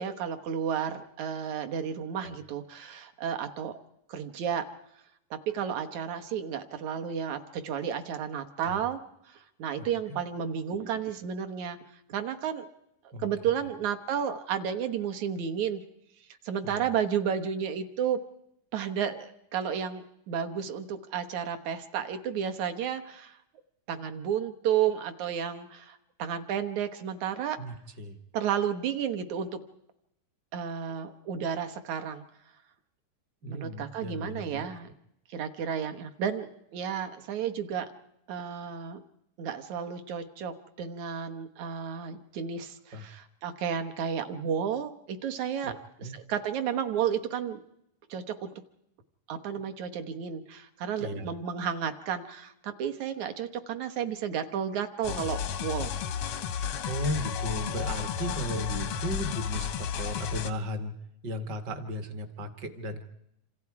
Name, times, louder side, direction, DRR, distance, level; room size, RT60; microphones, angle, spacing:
voice 1, 0.0-3.8 4.1-4.7 5.3-9.0 9.3-11.8 12.1-12.7 13.2-15.8 16.4-18.2 18.7-23.4 23.9-27.6 28.3-29.6 30.5-32.2 33.5-34.9 35.3-37.9 38.3-39.0 39.4-47.6 48.1-48.5 49.3-55.9 58.6-58.7, right 8 dB, 65° right, 7 dB, 2.4 m, -32 dB
voice 2, 27.6-28.2 33.4-34.7 42.9-43.1 45.6-46.2 51.0-51.3 56.8-60.9 61.2-63.0, equal, 45° right, 9 dB, 1.5 m, -36 dB
sound 1, 55.0-60.5, left 8 dB, 70° left, 1.4 m, -32 dB
27.5 x 26.5 x 4.8 m, 0.79 s
omnidirectional pair, 3.9 m